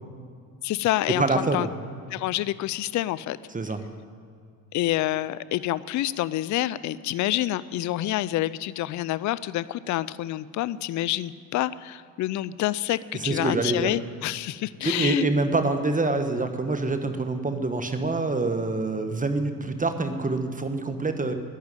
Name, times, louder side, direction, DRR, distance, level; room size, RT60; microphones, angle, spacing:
voice 1, 0.6-1.7 2.1-3.4 4.7-15.3, left 14 dB, 40° left, 18 dB, 0.5 m, -27 dB
voice 2, 1.2-1.7 3.5-3.8 13.1-13.9 14.8-21.3, right 3 dB, 15° right, 8 dB, 1.2 m, -26 dB
10.5 x 10.5 x 9.1 m, 2.3 s
supercardioid pair, 80°, 47 cm